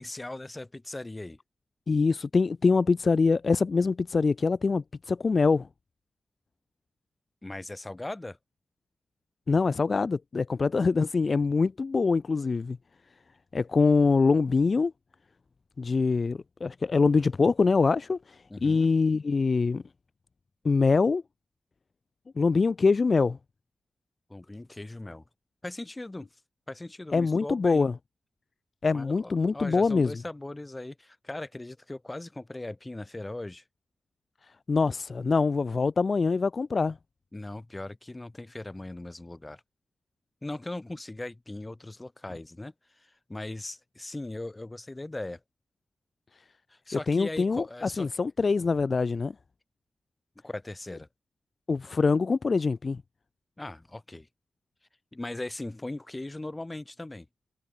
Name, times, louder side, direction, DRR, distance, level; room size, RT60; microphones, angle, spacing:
voice 1, 0.0-1.4 7.4-8.4 18.5-18.9 24.3-25.2 25.6-26.3 26.7-27.9 28.9-33.6 37.3-39.6 40.4-45.4 46.7-48.1 50.4-51.1 53.6-54.3 55.1-57.3, left 2 dB, 20° left, 2.3 m, -39 dB
voice 2, 1.9-5.7 9.5-12.8 13.5-14.9 15.8-19.8 20.6-21.2 22.4-23.4 27.1-27.9 28.8-30.1 34.7-37.0 47.1-49.3 51.7-53.0, left 4 dB, 50° left, 0.3 m, -24 dB
cardioid pair, 65°, 0 cm